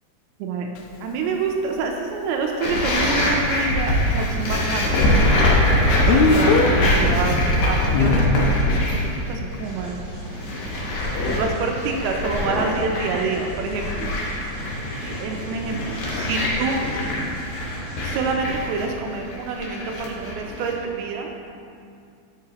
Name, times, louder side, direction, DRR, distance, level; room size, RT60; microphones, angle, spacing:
voice 1, 0.4-0.7 1.0-10.0 10.3-10.4 11.3-14.1 15.0-16.9 18.0-21.3, right 4 dB, 80° right, 2 dB, 2.5 m, -27 dB
Speech, 0.8-0.9 6.1-6.7 7.9-8.2, left 5 dB, 85° left, 2.1 m, -18 dB
sound 1, 2.6-9.2 9.5-9.9 10.3-20.7, left 1 dB, 65° left, 1.9 m, -23 dB
sound 2, 9.6-18.4, right 1 dB, 45° right, 1.0 m, -38 dB
8.8 x 7.4 x 2.9 m, 2.4 s
omnidirectional pair, 4.7 m